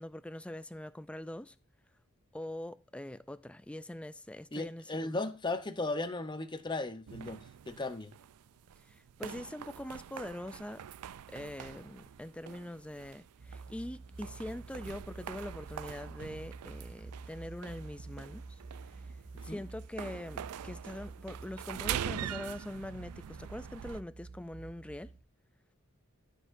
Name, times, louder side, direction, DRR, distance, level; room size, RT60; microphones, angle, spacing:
voice 1, 0.0-1.6 2.3-5.2 8.9-10.8 11.3-18.6 19.4-25.1, left 1 dB, 5° left, 0.3 m, -43 dB
voice 2, 4.5-8.1 19.5-19.6, left 2 dB, 20° left, 0.7 m, -36 dB
sound 1, 7.1-24.0, right 9 dB, 85° right, 0.4 m, -44 dB
sound 2, 13.4-25.2, right 3 dB, 55° right, 1.5 m, -49 dB
15.0 x 6.4 x 2.6 m
head